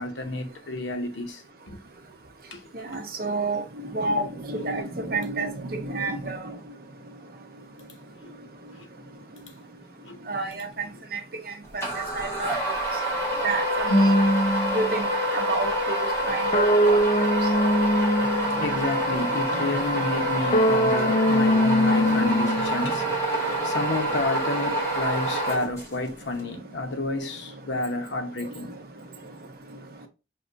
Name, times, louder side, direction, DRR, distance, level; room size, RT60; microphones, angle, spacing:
voice 1, 0.0-1.8 2.5-2.6 2.9-3.0 8.2-8.3 8.7-8.9 10.0-10.2 10.9-11.0 18.6-28.7, left 2 dB, 85° left, 0.8 m, -30 dB
voice 2, 2.7-3.6 3.9-6.6 10.3-10.7 11.1-11.4 11.7-11.8 12.1-12.5 13.4-14.1 14.7-17.0 19.5-19.6 22.1-22.4 23.0-23.1, right 2 dB, 50° right, 0.7 m, -30 dB
sound 1, 11.8-26.1, equal, 15° left, 1.0 m, -27 dB
sound 2, 13.9-15.0 16.5-18.9 20.5-23.0, equal, 30° left, 0.3 m, -22 dB
5.9 x 2.6 x 2.5 m
head